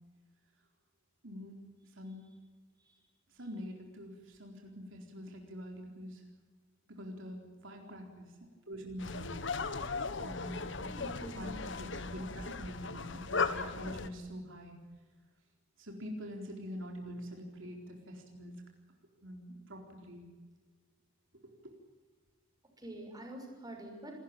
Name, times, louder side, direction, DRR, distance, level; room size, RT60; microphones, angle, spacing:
voice 1, 1.2-1.6 1.9-2.3 3.3-6.2 6.9-8.3 8.7-9.4 10.2-11.1 11.4-14.8 15.8-18.6 19.2-20.3 21.6-21.7, equal, 70° right, 2 dB, 4.2 m, -45 dB
sound 1, 9.0-14.1, left 4 dB, 65° left, 1.5 m, -37 dB
voice 2, 11.0-11.7 22.8-24.2, right 1 dB, 20° right, 2 dB, 6.1 m, -47 dB
28.0 x 14.5 x 9.0 m, 1.3 s
head